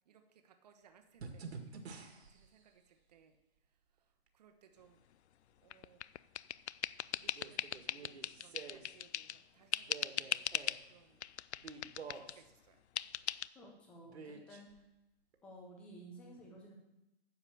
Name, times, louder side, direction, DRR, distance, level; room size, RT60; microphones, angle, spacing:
voice 1, 0.1-2.0 2.3-3.4 4.0-5.0 5.6-6.0 7.1-10.5 10.8-11.3 12.1-12.8, right 8 dB, 40° right, 8 dB, 1.1 m, -65 dB
sound 1, 1.2-2.5 4.3-4.4 7.2-8.9 9.8-10.8 11.6-12.4 14.0-14.8 15.3-15.4, right 5 dB, 75° right, 1.9 m, -49 dB
sound 2, 5.7-9.4 9.7-10.8 11.2-12.4 13.0-13.5, left 11 dB, 90° left, 0.5 m, -39 dB
voice 2, 13.5-14.8 15.4-16.8, right 1 dB, 5° left, 0 dB, 0.5 m, -54 dB
10.0 x 7.0 x 6.9 m, 0.92 s
hypercardioid pair, 165°, 33 cm